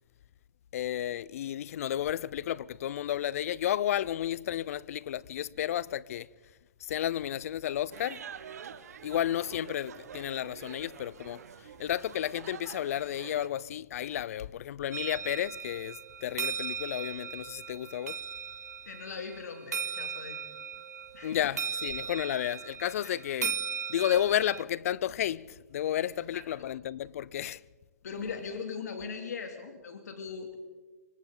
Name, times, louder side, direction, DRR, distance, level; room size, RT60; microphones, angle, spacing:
voice 1, 0.7-6.3 6.8-8.2 9.0-11.4 11.8-18.2 21.2-23.5 23.9-27.6, left 11 dB, 60° left, 0.6 m, -32 dB
sound 1, 7.9-13.5, right 8 dB, 75° right, 1.4 m, -47 dB
sound 2, 14.9-24.6, right 7 dB, 90° right, 0.7 m, -37 dB
voice 2, 18.8-20.4 21.1-21.4 23.0-23.1 23.4-23.5 26.3-26.7 28.0-30.6, left 5 dB, 80° left, 2.7 m, -40 dB
28.5 x 25.0 x 3.9 m
hypercardioid pair, 135°, 9 cm